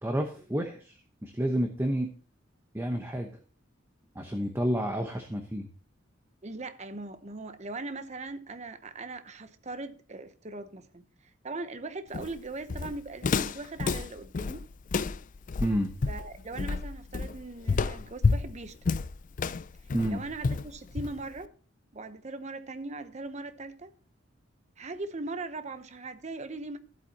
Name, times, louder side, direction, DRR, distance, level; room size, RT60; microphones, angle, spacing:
voice 1, 0.0-2.1 2.7-3.3 4.1-5.7 15.6-15.9 19.9-20.2, equal, 15° right, 1.0 m, -30 dB
voice 2, 6.4-11.0 11.4-14.7 16.1-19.0 20.1-21.5 21.9-23.9 24.8-26.8, right 3 dB, 35° right, 0.8 m, -40 dB
Walk footsteps, 12.1-21.4, left 4 dB, 40° left, 0.4 m, -30 dB
14.5 x 8.3 x 2.8 m
head